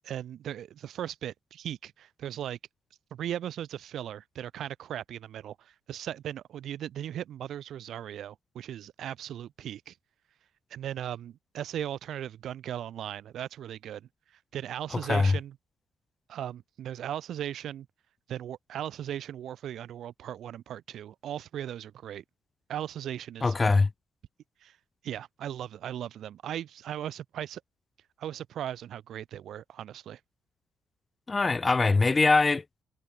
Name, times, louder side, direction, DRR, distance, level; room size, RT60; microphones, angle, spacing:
voice 1, 0.0-2.6 3.1-10.0 10.7-14.1 14.5-15.6 16.3-17.9 18.3-22.2 22.7-23.5 24.6-24.8 25.0-27.6 28.2-30.2, right 11 dB, 70° right, 1.3 m, -37 dB
voice 2, 23.4-23.9 31.3-32.8, left 3 dB, 25° left, 0.3 m, -23 dB
cardioid pair, 90°, 0 cm